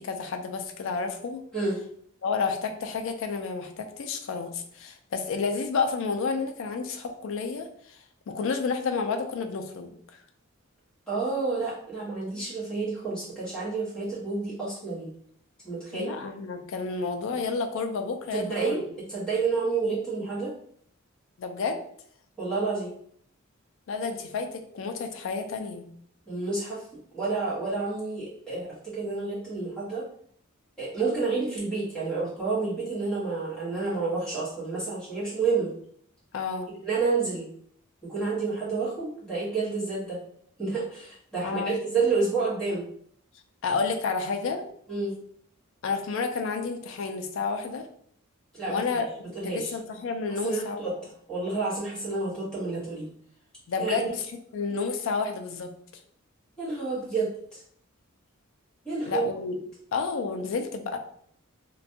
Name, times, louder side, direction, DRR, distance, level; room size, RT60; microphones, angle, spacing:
voice 1, 0.0-1.4 2.2-8.0 8.3-10.0 15.9-18.8 21.4-21.8 23.9-25.9 36.3-36.7 41.4-41.8 43.6-44.6 45.8-47.9 48.7-49.1 49.4-50.8 53.7-54.3 54.5-55.7 59.1-59.6 59.9-61.0, left 4 dB, 65° left, 6 dB, 0.4 m, -30 dB
voice 2, 11.1-15.1 15.6-16.1 18.3-18.8 19.1-20.5 22.4-22.9 26.3-26.8 27.1-30.0 30.8-35.7 36.8-37.5 38.0-40.2 40.6-42.9 44.9-45.1 48.5-48.8 49.3-49.7 50.4-50.9 51.3-53.1 53.8-54.1 56.6-57.6 58.8-59.2, right 4 dB, 5° left, -9 dB, 1.1 m, -29 dB
2.5 x 2.2 x 2.6 m, 0.65 s
head